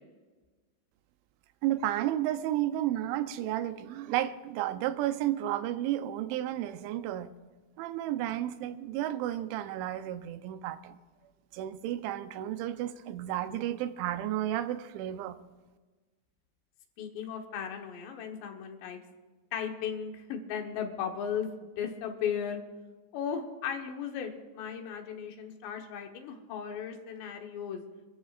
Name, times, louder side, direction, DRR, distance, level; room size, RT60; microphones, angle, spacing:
voice 1, 1.6-7.3 7.8-11.0 11.5-15.4, right 13 dB, 90° right, 11 dB, 3.1 m, -32 dB
voice 2, 17.0-19.0 19.5-22.6 23.1-27.8, left 7 dB, 75° left, 3 dB, 3.3 m, -36 dB
26.5 x 13.5 x 2.4 m, 1.3 s
omnidirectional pair, 5.2 m